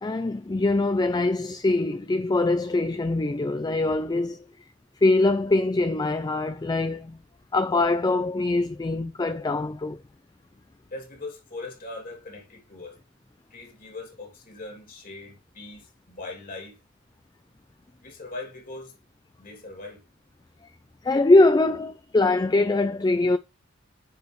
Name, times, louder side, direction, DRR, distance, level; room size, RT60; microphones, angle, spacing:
voice 1, 0.0-4.4 5.0-7.2 7.5-10.0 21.0-23.4, left 2 dB, 20° left, 0.4 m, -23 dB
voice 2, 10.9-13.0 13.5-16.8 18.0-18.9 19.4-20.0, left 2 dB, 45° left, 2.8 m, -40 dB
9.3 x 4.8 x 3.2 m
head